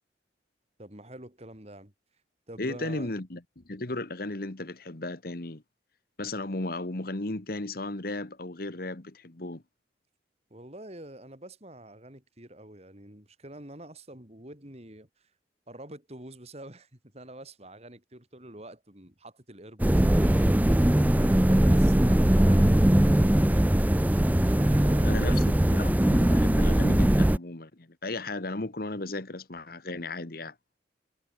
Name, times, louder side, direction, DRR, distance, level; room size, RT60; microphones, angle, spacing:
voice 1, 0.8-1.9 2.5-3.1 10.5-15.1 15.7-16.9 17.1-25.4, right 1 dB, 35° right, 4.3 m, -46 dB
voice 2, 2.6-5.6 6.2-9.6 25.0-30.5, left 2 dB, 55° left, 1.5 m, -35 dB
sound 1, 19.8-27.4, right 1 dB, 10° right, 0.4 m, -21 dB
head